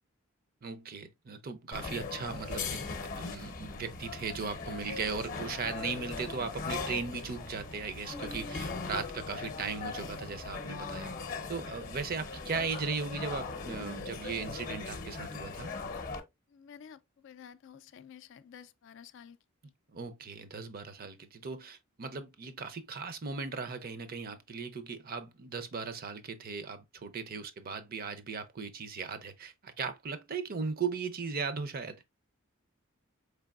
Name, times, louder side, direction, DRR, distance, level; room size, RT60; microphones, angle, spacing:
voice 1, 0.6-2.8 3.2-11.1 11.5-15.7 19.9-32.0, right 5 dB, 45° right, 0.5 m, -37 dB
sound 1, 1.7-16.2, left 4 dB, 40° left, 0.7 m, -39 dB
voice 2, 16.5-19.4 19.6-19.7, left 8 dB, 60° left, 0.3 m, -52 dB
4.5 x 3.3 x 2.4 m
head